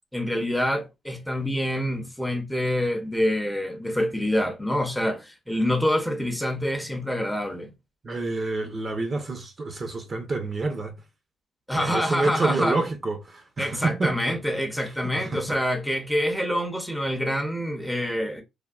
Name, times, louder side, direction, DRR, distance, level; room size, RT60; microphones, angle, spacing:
voice 1, 0.1-7.7 11.7-12.8 13.6-18.4, equal, 5° left, 0.6 m, -26 dB
voice 2, 8.0-11.0 11.7-14.4 14.8-15.4, right 3 dB, 35° right, 0.6 m, -28 dB
3.3 x 2.2 x 2.3 m
cardioid pair, 90°, 0 cm